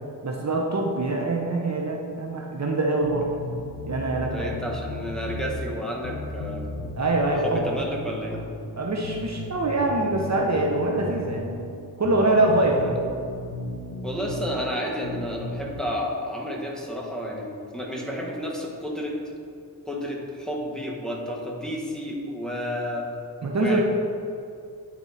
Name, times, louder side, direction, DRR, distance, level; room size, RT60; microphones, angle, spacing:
voice 1, 0.2-3.3 3.9-4.5 7.0-7.7 8.8-11.5 12.0-13.0 23.4-23.8, right 2 dB, 45° right, 0 dB, 0.8 m, -24 dB
sound 1, 2.7-15.8, left 2 dB, 85° left, 0.8 m, -36 dB
voice 2, 4.2-6.6 7.4-8.4 12.8-12.9 14.0-19.2 19.8-23.1 23.6-23.8, equal, ahead, -3 dB, 1.3 m, -31 dB
9.0 x 4.4 x 4.1 m, 2.5 s
wide cardioid pair, 80°, 39 cm